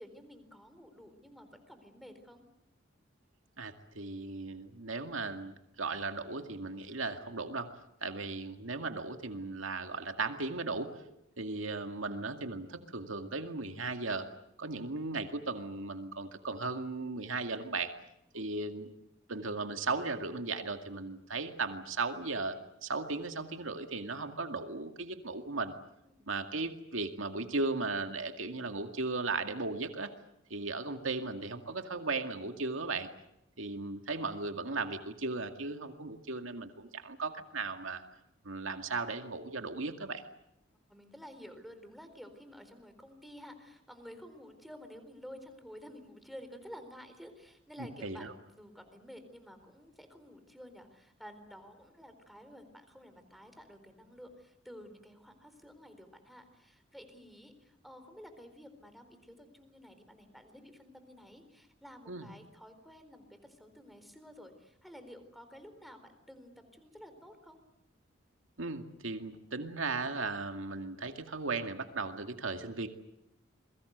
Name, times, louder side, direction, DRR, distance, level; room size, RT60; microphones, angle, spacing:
voice 1, 0.0-2.4 18.3-18.8 26.1-26.3 40.9-67.6, equal, ahead, 8 dB, 4.1 m, -52 dB
voice 2, 3.6-7.7 8.0-10.9 11.4-14.3 14.6-17.9 18.3-18.9 19.3-22.6 22.8-25.7 26.3-30.1 30.5-33.1 33.6-38.0 38.4-40.2 47.8-48.3 62.1-62.3 68.6-72.9, right 3 dB, 75° right, 6 dB, 2.2 m, -36 dB
29.0 x 22.5 x 8.1 m, 0.80 s
head